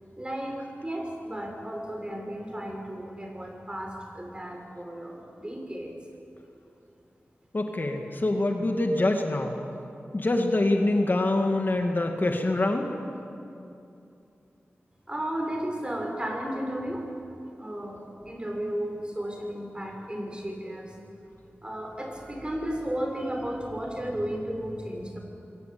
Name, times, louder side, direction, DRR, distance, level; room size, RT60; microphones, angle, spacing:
voice 1, 0.2-5.9 15.1-17.1 17.5-21.0 21.6-25.2, right 1 dB, 20° right, 2 dB, 6.0 m, -34 dB
voice 2, 7.5-9.6 10.1-12.9, left 2 dB, 45° left, 3 dB, 2.3 m, -25 dB
27.0 x 22.0 x 8.8 m, 2.7 s
wide cardioid pair, 70°, 4 cm